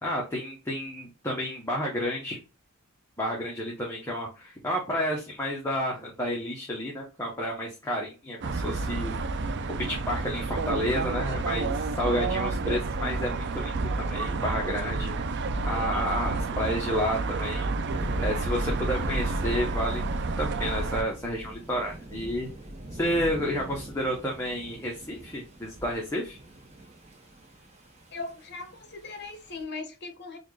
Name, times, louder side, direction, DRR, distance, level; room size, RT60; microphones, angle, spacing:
voice 1, 0.0-2.4 3.2-9.1 9.8-15.2 15.6-17.7 18.2-20.0 20.4-22.5 22.9-26.4, equal, 10° left, 0.9 m, -31 dB
sound 1, 8.4-21.0, right 3 dB, 55° right, 0.4 m, -30 dB
sound 2, 17.9-29.6, right 1 dB, 30° right, 0.9 m, -41 dB
voice 2, 28.1-30.4, left 3 dB, 50° left, 0.9 m, -39 dB
4.2 x 2.5 x 3.1 m
head